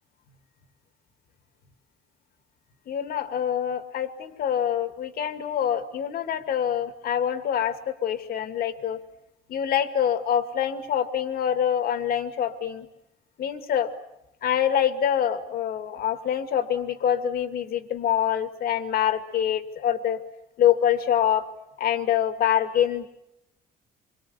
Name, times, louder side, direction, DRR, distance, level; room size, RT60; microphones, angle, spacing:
voice 1, 2.9-9.0 9.5-12.9 13.4-13.9 14.4-20.2 20.6-21.5 21.8-23.1, left 9 dB, 65° left, 9 dB, 2.5 m, -25 dB
26.0 x 24.0 x 8.4 m, 0.85 s
cardioid pair, 110°, 17 cm